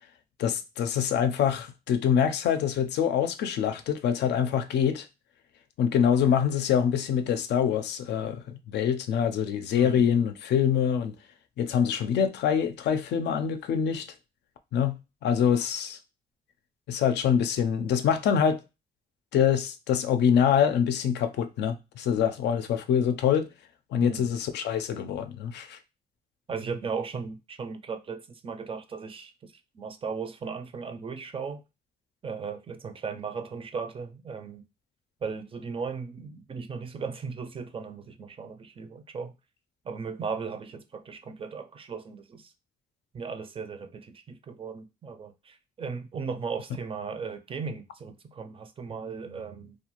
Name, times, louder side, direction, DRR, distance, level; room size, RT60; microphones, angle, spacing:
voice 1, 0.4-5.1 5.8-11.1 11.6-14.1 14.7-15.0 15.2-16.0 16.9-18.6 19.3-23.5 23.9-25.8, left 8 dB, 85° left, 0.4 m, -25 dB
voice 2, 9.7-10.1 24.0-24.3 26.5-29.3 29.8-31.6 32.2-34.6 35.2-39.3 39.9-42.5 43.1-49.8, right 5 dB, 30° right, 0.4 m, -36 dB
2.4 x 2.3 x 2.9 m
cardioid pair, 105°, 17 cm